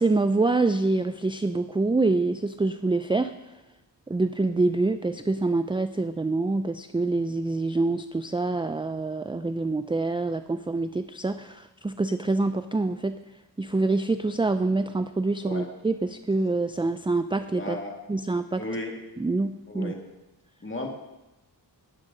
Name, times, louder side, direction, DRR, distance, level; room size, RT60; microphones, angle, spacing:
voice 1, 0.0-3.3 4.1-13.1 13.6-17.8 18.1-18.6 19.2-19.9, right 3 dB, 10° right, 10 dB, 0.4 m, -26 dB
voice 2, 17.5-18.0 18.6-18.9 19.7-20.0 20.6-20.9, left 2 dB, 25° left, 1 dB, 2.2 m, -34 dB
19.0 x 7.4 x 3.9 m, 1.0 s
wide cardioid pair, 65°, 44 cm